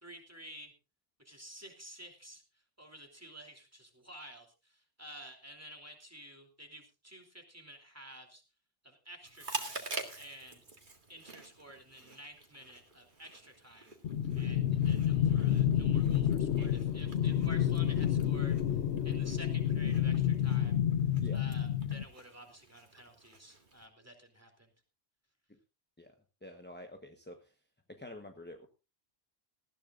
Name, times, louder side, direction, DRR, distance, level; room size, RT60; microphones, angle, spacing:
voice 1, 0.0-0.7 1.2-2.4 2.8-4.5 5.0-8.4 8.8-9.8 10.2-10.6 11.1-13.9 14.4-18.5 19.0-20.8 21.3-24.7, equal, 15° right, 2 dB, 3.0 m, -51 dB
Chewing mastication, 9.2-23.9, right 3 dB, 45° right, 2.1 m, -48 dB
sound 1, 14.0-22.0, left 10 dB, 80° left, 1.1 m, -29 dB
voice 2, 26.4-27.6 27.9-28.7, left 1 dB, 10° left, 5 dB, 1.1 m, -48 dB
19.0 x 14.5 x 2.5 m, 0.30 s
omnidirectional pair, 1.1 m